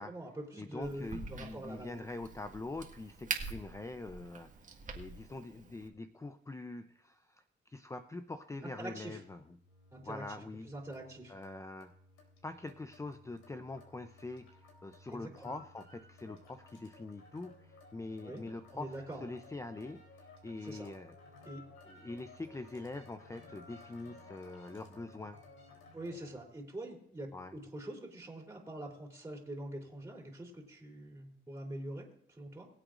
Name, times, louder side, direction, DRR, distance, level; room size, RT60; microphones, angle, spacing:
voice 1, 0.0-1.9 8.8-9.2 9.9-10.2 10.6-11.3 15.1-15.5 18.2-18.4 18.7-19.3 20.6-20.9 21.4-21.6 25.9-32.7, right 1 dB, 15° right, -2 dB, 3.4 m, -44 dB
voice 2, 0.6-4.5 5.0-9.6 10.0-10.7 11.3-11.9 12.4-21.2 21.9-25.4 27.3-27.6, left 2 dB, 15° left, 9 dB, 0.6 m, -44 dB
Crack, 0.8-5.9, right 4 dB, 40° right, 1.9 m, -44 dB
sound 1, 9.0-26.4, left 2 dB, 85° left, 3.6 m, -57 dB
23.0 x 7.9 x 2.5 m, 0.72 s
cardioid pair, 90°, 20 cm